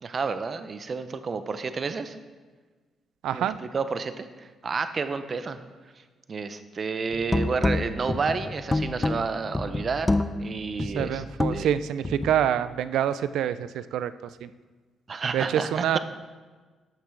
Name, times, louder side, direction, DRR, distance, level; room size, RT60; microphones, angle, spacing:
voice 1, 0.0-2.2 3.3-5.6 6.3-11.2 11.5-11.7 15.1-16.0, right 5 dB, 40° right, 10 dB, 0.7 m, -30 dB
voice 2, 3.2-3.6 10.8-14.1 14.4-14.5 15.3-16.0, right 10 dB, 80° right, 14 dB, 0.4 m, -26 dB
sound 1, 7.1-12.5, left 2 dB, 20° left, 0.5 m, -28 dB
13.0 x 5.9 x 4.6 m, 1.4 s
cardioid pair, 90°, 0 cm